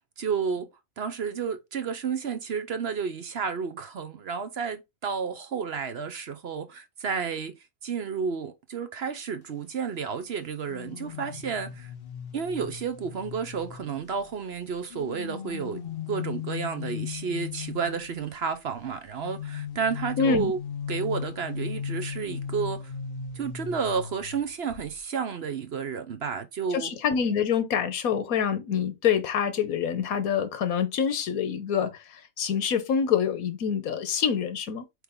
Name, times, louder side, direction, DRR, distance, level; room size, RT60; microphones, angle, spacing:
voice 1, 0.2-0.7 1.0-7.5 7.8-11.9 12.3-15.8 16.1-20.6 20.9-22.9 23.3-26.9, right 6 dB, 55° right, 0.9 m, -31 dB
sound 1, 10.7-14.3 14.9-18.2 19.2-24.4 24.7-25.0, left 8 dB, 50° left, 0.8 m, -37 dB
voice 2, 20.2-20.5 26.7-31.9 32.4-34.8, left 7 dB, 80° left, 1.4 m, -26 dB
8.0 x 3.3 x 3.6 m
omnidirectional pair, 1.5 m